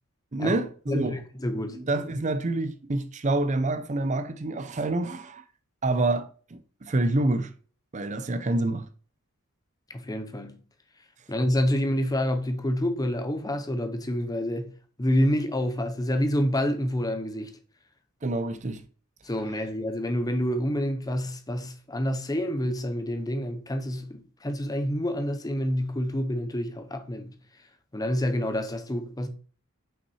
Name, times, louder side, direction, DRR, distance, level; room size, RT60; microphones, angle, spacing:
voice 1, 0.3-1.2 1.7-5.4 5.8-7.5 7.9-8.9 18.2-18.8, right 2 dB, 35° right, 0.6 m, -27 dB
voice 2, 0.9-1.8 9.9-10.6 11.3-17.5 19.2-27.4 27.9-29.3, equal, 15° left, 0.7 m, -28 dB
6.0 x 5.3 x 4.8 m
head